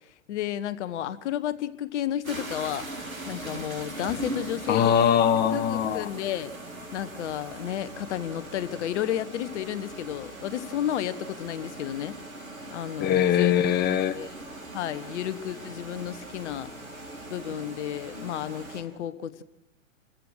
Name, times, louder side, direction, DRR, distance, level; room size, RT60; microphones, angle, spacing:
voice 1, 0.3-2.9 3.3-4.9 5.5-6.5 6.9-12.1 12.7-13.5 14.0-14.3 14.7-16.7 17.3-19.4, left 11 dB, 55° left, 15 dB, 1.3 m, -32 dB
sound 1, 2.2-18.8, right 2 dB, 85° right, 5.3 m, -40 dB
voice 2, 4.7-6.1 13.0-14.2, left 9 dB, 25° left, 13 dB, 1.1 m, -22 dB
29.5 x 15.0 x 6.5 m, 0.96 s
hypercardioid pair, 115°, 40 cm